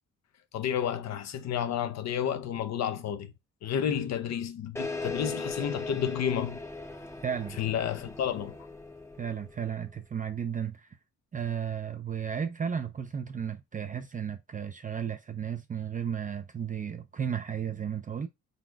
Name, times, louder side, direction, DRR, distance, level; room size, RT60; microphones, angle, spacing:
voice 1, 0.5-3.3 3.6-6.6 7.6-8.6, left 9 dB, 60° left, 0.6 m, -31 dB
sound 1, 4.8-9.8, left 3 dB, 10° left, 0.7 m, -38 dB
voice 2, 7.2-7.6 9.2-10.9 11.3-18.3, right 8 dB, 25° right, 0.4 m, -34 dB
4.0 x 2.4 x 4.5 m
cardioid pair, 90°, 30 cm